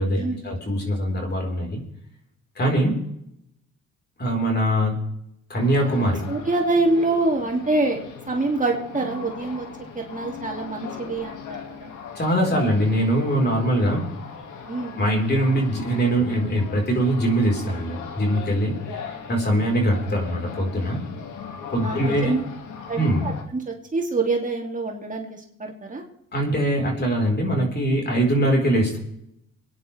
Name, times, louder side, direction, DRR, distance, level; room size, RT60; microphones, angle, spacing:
voice 1, 0.0-1.8 2.6-3.0 4.2-5.0 5.5-6.2 12.2-14.1 15.0-21.0 21.7-22.3 22.9-23.2 26.3-29.0, right 1 dB, 35° left, 1 dB, 4.5 m, -22 dB
sound 1, 5.6-23.4, left 6 dB, 80° left, 2.2 m, -39 dB
voice 2, 6.3-9.7 9.9-11.9 14.6-15.0 21.8-22.4 22.9-26.0, right 2 dB, 25° right, 1 dB, 2.6 m, -25 dB
24.5 x 9.9 x 3.4 m, 0.76 s
cardioid pair, 90°, 30 cm